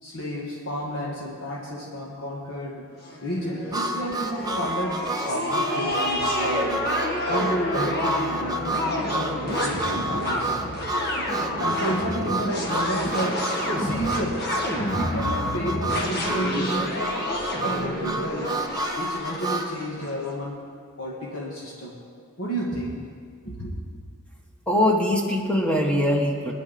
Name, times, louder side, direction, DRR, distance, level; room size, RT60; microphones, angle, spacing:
voice 1, 0.0-2.9 3.2-6.9 7.2-10.5 11.6-13.5 13.8-17.3 17.6-18.6 18.9-20.6 21.0-22.0 22.4-23.0 23.4-23.7, equal, 60° left, -4 dB, 1.9 m, -31 dB
sound 1, 3.1-20.1, left 1 dB, 45° left, 2.2 m, -29 dB
Harmonica, 3.7-19.7, right 2 dB, 15° right, 0.7 m, -30 dB
voice 2, 24.7-26.5, left 1 dB, 5° left, 0 dB, 1.2 m, -22 dB
22.0 x 10.0 x 4.2 m, 2.2 s
head